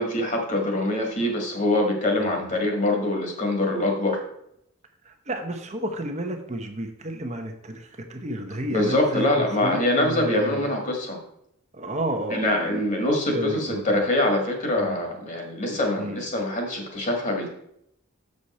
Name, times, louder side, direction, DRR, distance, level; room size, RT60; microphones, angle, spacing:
voice 1, 0.0-4.2 8.7-11.2 12.3-17.5, left 1 dB, 40° left, 2 dB, 1.7 m, -24 dB
voice 2, 5.0-10.7 11.7-12.8 13.3-13.8 14.8-15.0 16.0-16.2, right 1 dB, 35° right, 5 dB, 0.9 m, -31 dB
6.7 x 6.5 x 4.2 m, 0.73 s
head